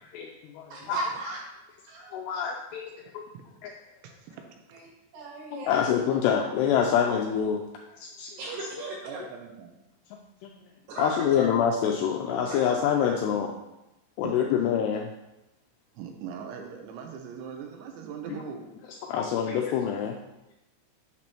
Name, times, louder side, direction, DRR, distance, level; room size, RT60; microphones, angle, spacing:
voice 1, 0.2-1.0 2.1-2.8 3.6-3.7 5.5-7.6 8.0-8.3 11.0-13.5 14.2-15.1 19.1-20.2, left 8 dB, 90° left, 2 dB, 2.4 m, -26 dB
voice 2, 0.7-1.4 1.9-2.1 4.7-4.9 5.1-5.9 8.4-9.2 10.9-11.5 12.5-12.8, right 2 dB, 65° right, -3 dB, 3.5 m, -36 dB
voice 3, 4.0-4.4 9.0-9.7 14.2-14.4 15.9-18.7, right 7 dB, 80° right, 4 dB, 3.0 m, -40 dB
9.0 x 6.1 x 2.9 m, 0.93 s
omnidirectional pair, 5.3 m